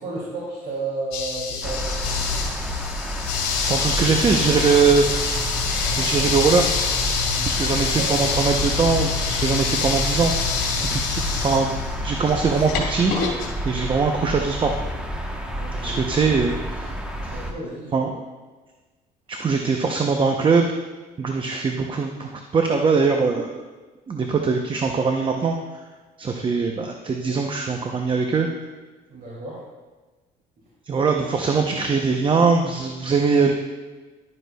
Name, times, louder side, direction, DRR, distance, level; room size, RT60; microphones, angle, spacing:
voice 1, 0.0-2.2 7.3-7.7 8.0-8.1 11.3-11.4 15.6-16.3 17.3-18.1 21.3-21.4 29.1-29.6, right 3 dB, 60° right, -7 dB, 2.8 m, -33 dB
sound 1, 1.1-13.5, left 5 dB, 75° left, 2.4 m, -25 dB
sound 2, 1.6-17.5, right 1 dB, 5° right, 1.1 m, -30 dB
voice 2, 3.7-5.6 6.0-6.7 7.4-10.3 10.8-13.4 13.6-14.8 15.8-16.8 17.2-17.3 17.9-18.1 19.3-20.7 21.2-23.5 24.1-25.6 26.2-28.5 30.9-33.5, right 5 dB, 30° right, 3 dB, 0.7 m, -22 dB
12.0 x 9.4 x 2.3 m, 1.3 s
cardioid pair, 110°, 17 cm